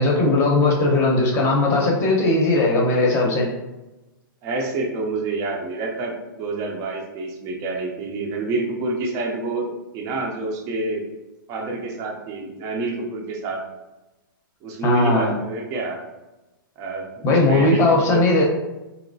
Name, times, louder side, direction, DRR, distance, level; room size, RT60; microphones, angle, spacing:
voice 1, 0.0-3.5 14.8-15.3 17.2-18.4, left 2 dB, 20° left, -1 dB, 0.7 m, -18 dB
voice 2, 4.4-11.0 11.5-13.6 14.6-16.0 16.8-18.2, right 3 dB, 25° right, 1 dB, 0.5 m, -27 dB
4.1 x 2.9 x 2.6 m, 1.0 s
hypercardioid pair, 150°, 12 cm